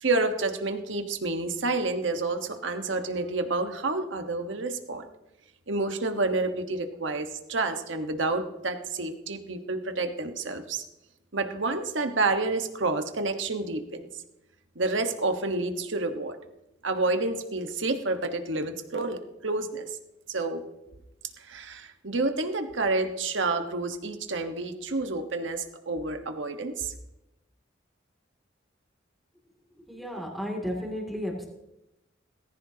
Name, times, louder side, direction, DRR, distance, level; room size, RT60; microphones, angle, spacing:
voice 1, 0.0-5.1 5.7-10.8 11.3-14.1 14.7-16.4 16.8-19.9 20.3-20.6 21.4-26.9, right 3 dB, 70° right, 6 dB, 1.3 m, -29 dB
voice 2, 29.9-31.5, equal, ahead, -1 dB, 2.5 m, -33 dB
18.5 x 15.5 x 2.9 m, 0.92 s
head